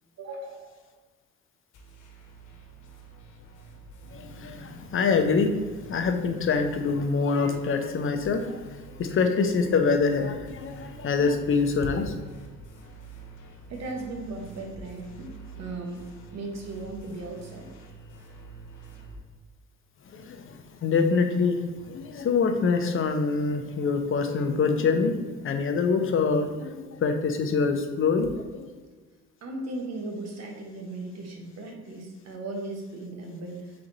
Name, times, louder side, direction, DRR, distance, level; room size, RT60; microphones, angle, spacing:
voice 1, 0.2-0.8 13.7-17.7 29.4-33.7, right 2 dB, 60° right, 2 dB, 1.1 m, -37 dB
sound 1, 1.7-19.2, right 4 dB, 85° left, 1.0 m, -47 dB
voice 2, 4.1-12.1 20.1-28.7, left 4 dB, 45° left, 6 dB, 0.6 m, -25 dB
3.9 x 3.3 x 3.9 m, 1.3 s
cardioid pair, 90°, 30 cm